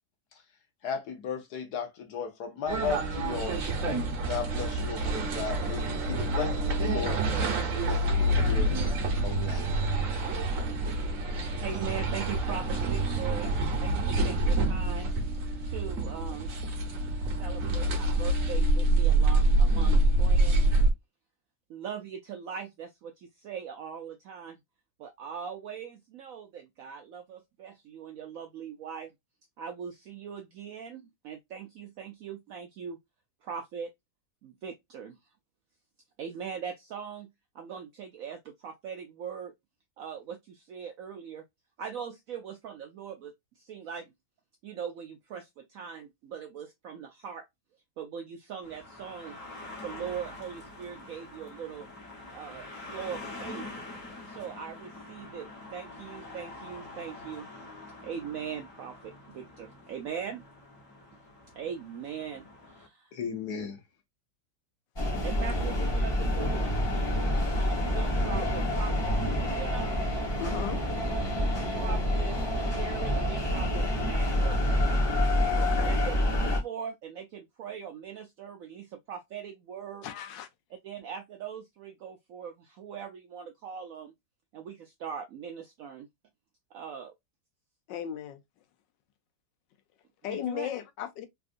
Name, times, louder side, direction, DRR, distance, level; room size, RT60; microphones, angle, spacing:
voice 1, 0.8-3.6 4.3-7.2 7.7-8.7 9.2-9.7 63.1-63.8, left 6 dB, 65° left, 1.3 m, -35 dB
sound 1, 2.7-20.9, right 2 dB, 55° right, 1.1 m, -26 dB
voice 2, 11.2-13.5 13.8-15.1 15.6-16.5 17.2-20.6 21.7-24.6 25.0-29.1 29.6-33.0 33.4-33.9 34.4-35.2 36.2-37.3 37.5-39.5 40.0-41.5 41.8-44.1 44.6-47.4 48.0-49.4 49.8-51.9 52.3-53.7 54.3-57.5 58.0-60.4 61.5-63.1 65.2-67.1 67.6-70.0 71.8-74.6 75.5-80.1 80.8-84.1 84.5-86.1 86.7-87.1 90.3-90.7, right 7 dB, 75° right, 0.7 m, -41 dB
sound 2, 48.6-62.9, left 2 dB, 50° left, 1.4 m, -45 dB
sound 3, 65.0-76.6, left 1 dB, 20° left, 0.8 m, -27 dB
voice 3, 70.4-70.8 75.5-75.9 80.0-80.5 87.9-88.4 90.2-91.3, left 10 dB, 80° left, 1.3 m, -36 dB
3.5 x 2.4 x 2.4 m
omnidirectional pair, 1.9 m